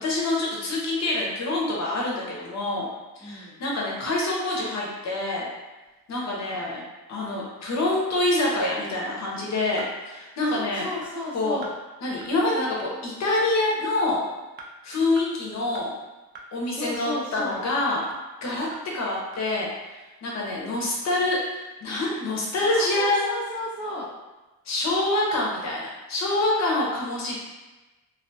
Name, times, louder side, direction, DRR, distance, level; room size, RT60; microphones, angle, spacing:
voice 1, 0.0-2.9 3.2-5.5 6.1-6.8 7.1-10.9 11.3-11.6 12.0-14.2 14.8-15.9 16.5-18.0 18.4-18.7 18.9-23.2 24.7-27.4, left 2 dB, 45° left, -3 dB, 0.7 m, -26 dB
voice 2, 3.2-3.6 6.5-6.8 10.4-11.7 16.7-17.7 22.8-24.1, left 1 dB, 5° right, -8 dB, 0.3 m, -34 dB
sound 1, 9.2-9.3 9.8-9.9 10.4-10.5 11.0-11.1 11.6-11.7 12.2-12.3 12.8-12.9 13.4-13.5 14.0-14.1 14.6-14.7 15.2-15.3 15.7-15.8 16.3-16.5 16.9-17.0 17.5-17.6 18.1-18.2 18.7-18.8 19.3-19.4, right 3 dB, 70° right, 0.5 m, -42 dB
2.4 x 2.2 x 2.6 m, 1.1 s
cardioid pair, 150°, 38 cm